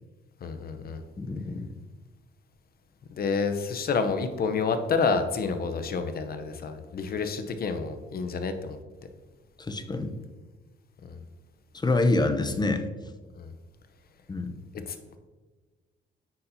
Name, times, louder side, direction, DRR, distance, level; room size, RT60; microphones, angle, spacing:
voice 1, 0.4-1.0 3.1-8.8 11.1-11.2 13.4-13.5 14.9-15.2, left 4 dB, 50° left, 8 dB, 0.8 m, -29 dB
voice 2, 1.2-1.7 9.6-10.1 11.7-12.8 14.3-14.5, left 2 dB, 20° left, 9 dB, 0.6 m, -26 dB
9.4 x 4.3 x 2.8 m, 1.3 s
cardioid pair, 90°, 20 cm